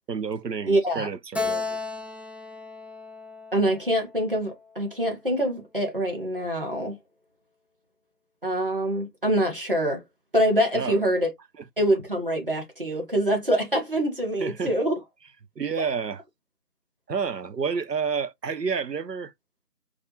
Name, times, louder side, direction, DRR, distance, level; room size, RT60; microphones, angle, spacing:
voice 1, 0.1-1.8 10.7-11.1 14.4-14.7 15.6-16.2 17.1-19.3, right 6 dB, 90° right, 0.7 m, -30 dB
voice 2, 0.7-1.1 3.5-7.0 8.4-10.0 10.3-11.3 11.8-15.0, right 1 dB, 35° right, 1.2 m, -25 dB
Keyboard (musical), 1.3-4.8, left 4 dB, 5° right, 0.3 m, -34 dB
4.6 x 2.4 x 2.8 m
figure-of-eight pair, 165°, 47 cm